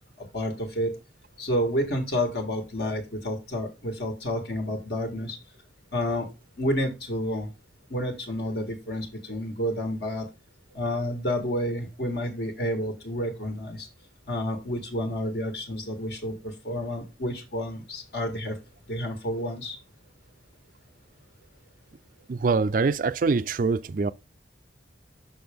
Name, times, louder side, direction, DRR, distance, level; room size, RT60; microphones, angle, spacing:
voice 1, 0.2-0.9 1.4-5.4 5.9-6.3 6.6-7.5 7.9-10.2 10.7-13.9 14.3-18.6 18.9-19.8, equal, 60° left, 1.5 m, -30 dB
voice 2, 22.3-24.1, right 4 dB, 45° right, 0.4 m, -24 dB
6.0 x 5.8 x 3.5 m
head